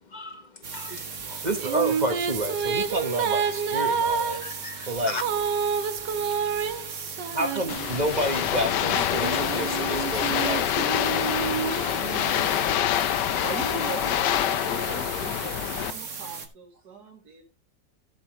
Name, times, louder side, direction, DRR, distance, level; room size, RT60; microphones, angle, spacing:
voice 1, 0.0-1.5 4.3-5.2 5.7-7.4 8.6-8.7 9.0-9.2, left 3 dB, 35° left, 0.9 m, -42 dB
sound 1, 0.6-16.5, right 5 dB, 45° right, 1.6 m, -38 dB
Female singing, 1.3-8.2 8.9-12.7, right 6 dB, 80° right, 1.6 m, -29 dB
voice 2, 1.4-4.4 4.9-5.2 7.3-10.8, right 1 dB, 30° right, 1.1 m, -29 dB
sound 2, 7.7-15.9, left 11 dB, 75° left, 1.3 m, -26 dB
voice 3, 13.4-17.4, right 4 dB, 65° right, 2.3 m, -39 dB
13.0 x 8.0 x 3.0 m
omnidirectional pair, 1.9 m